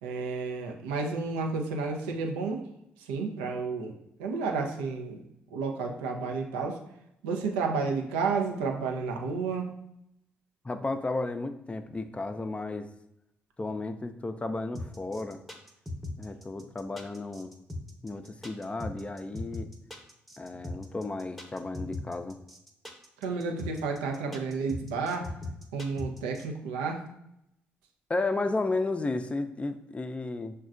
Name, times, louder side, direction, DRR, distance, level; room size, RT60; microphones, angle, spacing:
voice 1, 0.0-2.6 3.1-3.9 4.2-5.2 5.5-6.8 7.2-9.7 23.2-25.3 25.7-27.0, right 4 dB, 90° right, 2 dB, 0.5 m, -31 dB
voice 2, 10.6-12.9 13.6-15.4 16.2-17.5 18.0-19.7 20.4-22.4 28.1-30.5, left 2 dB, 25° left, 8 dB, 0.4 m, -33 dB
sound 1, 14.7-26.4, left 1 dB, ahead, 0.8 m, -39 dB
6.0 x 2.2 x 2.4 m, 0.82 s
hypercardioid pair, 45°, 5 cm